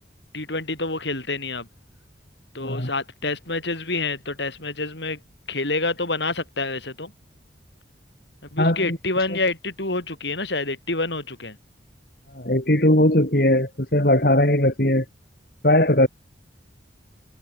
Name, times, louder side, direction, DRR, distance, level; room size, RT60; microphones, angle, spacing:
voice 1, 0.3-1.7 2.5-5.2 5.5-7.1 8.5-11.6, left 3 dB, 75° left, 7.4 m, -27 dB
voice 2, 8.6-9.0 12.3-15.0 15.6-16.1, left 1 dB, 55° left, 3.9 m, -19 dB
head